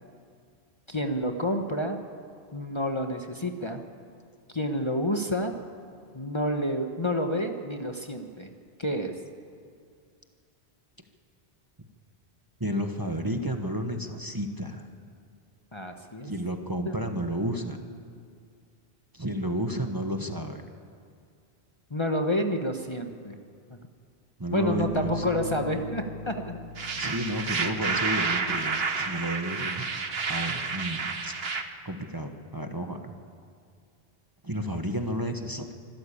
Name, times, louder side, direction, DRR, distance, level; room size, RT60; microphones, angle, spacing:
voice 1, 0.9-2.0 2.5-3.8 4.5-5.5 6.1-8.5 8.8-9.1 15.7-16.3 16.8-16.9 21.9-23.3 23.7-23.8 24.5-26.6, equal, 25° left, 4 dB, 1.2 m, -29 dB
voice 2, 12.6-14.9 16.2-17.8 19.1-20.6 24.4-25.2 27.0-29.9 30.3-31.3 31.8-33.1 34.4-35.7, equal, 20° right, 5 dB, 1.2 m, -31 dB
Bass guitar, 24.8-28.5, left 3 dB, 90° right, 3.6 m, -39 dB
sound 1, 26.8-31.6, right 4 dB, 65° right, 1.5 m, -30 dB
25.0 x 13.5 x 8.6 m, 2.3 s
omnidirectional pair, 1.1 m